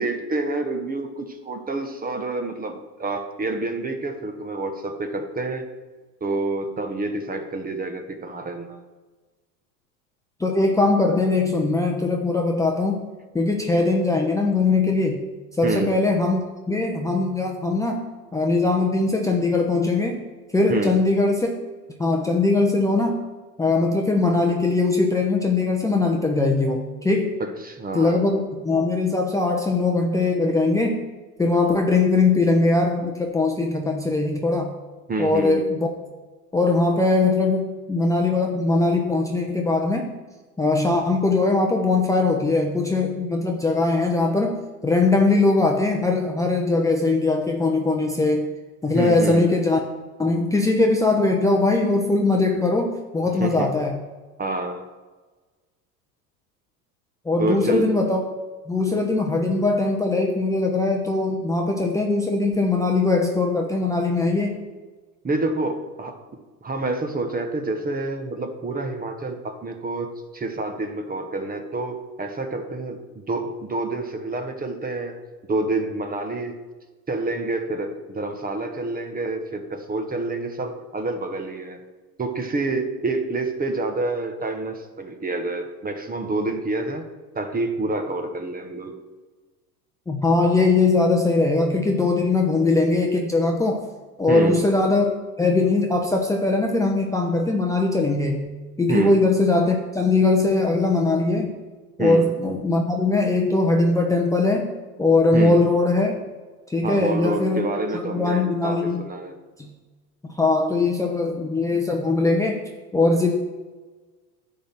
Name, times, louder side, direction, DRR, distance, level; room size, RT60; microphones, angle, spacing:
voice 1, 0.0-5.7 6.2-8.8 15.6-15.9 20.7-21.0 27.4-28.2 35.1-35.7 48.9-49.5 53.4-53.7 54.4-54.8 57.4-57.9 65.2-66.2 66.6-73.0 73.3-75.2 75.5-76.6 77.1-81.8 82.2-87.1 87.3-88.9 94.3-94.6 98.9-99.2 102.0-102.3 105.3-105.6 106.8-109.4, right 2 dB, 20° right, 6 dB, 1.1 m, -28 dB
voice 2, 10.4-13.1 13.3-15.3 15.6-18.0 18.3-20.2 20.5-21.5 22.0-23.2 23.6-27.3 27.9-31.0 31.4-34.7 35.2-35.9 36.5-40.1 40.6-48.5 48.8-49.8 50.2-54.0 57.2-58.2 58.7-64.6 90.1-93.8 94.2-95.1 95.4-98.5 98.8-101.5 102.0-104.7 105.0-106.1 106.7-107.6 107.9-109.1 109.6-109.7 110.3-112.6 112.9-113.3, left 3 dB, 5° left, 1 dB, 0.8 m, -21 dB
10.0 x 3.8 x 7.4 m, 1.3 s
hypercardioid pair, 95°, 49 cm